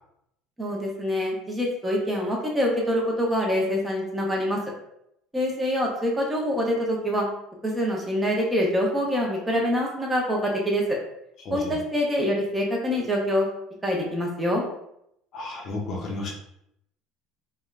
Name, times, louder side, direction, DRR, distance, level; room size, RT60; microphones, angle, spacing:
voice 1, 0.6-4.6 5.3-7.3 7.6-11.0 11.5-13.5 13.8-14.6, equal, 10° right, -1 dB, 0.6 m, -25 dB
voice 2, 11.4-11.8 15.3-16.3, left 2 dB, 45° left, 0 dB, 0.6 m, -33 dB
3.2 x 2.1 x 2.3 m, 0.77 s
cardioid pair, 135°, 0 cm